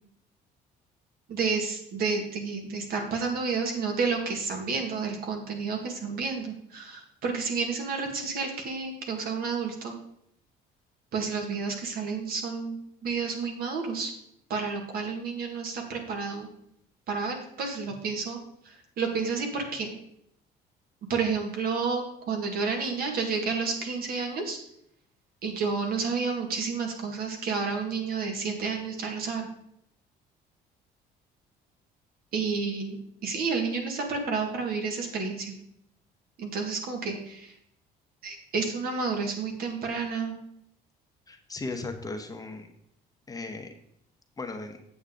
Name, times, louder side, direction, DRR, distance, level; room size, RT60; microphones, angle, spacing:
voice 1, 1.3-9.9 11.1-12.8 13.0-14.1 14.5-16.5 17.1-18.4 18.7-19.9 21.1-24.6 25.4-29.5 32.3-35.5 36.4-37.5 38.2-40.4, right 4 dB, 65° right, 2 dB, 1.9 m, -30 dB
voice 2, 41.3-42.7 43.3-43.7 44.4-44.8, left 3 dB, 20° left, 5 dB, 1.0 m, -36 dB
8.4 x 7.1 x 3.8 m, 0.73 s
cardioid pair, 110°, 17 cm